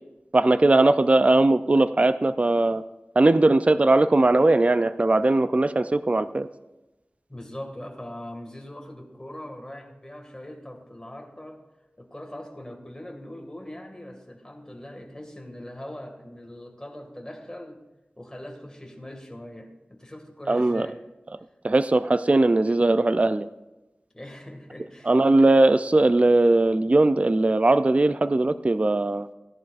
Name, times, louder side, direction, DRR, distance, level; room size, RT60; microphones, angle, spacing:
voice 1, 0.3-2.8 3.2-6.5 20.5-20.9 21.6-23.5 25.0-29.3, right 2 dB, 35° right, 12 dB, 0.4 m, -19 dB
voice 2, 7.3-11.6 12.0-17.8 18.2-21.0 24.1-25.1, left 1 dB, 20° left, 2 dB, 2.1 m, -41 dB
16.5 x 11.0 x 2.5 m, 1.0 s
wide cardioid pair, 60°, 4 cm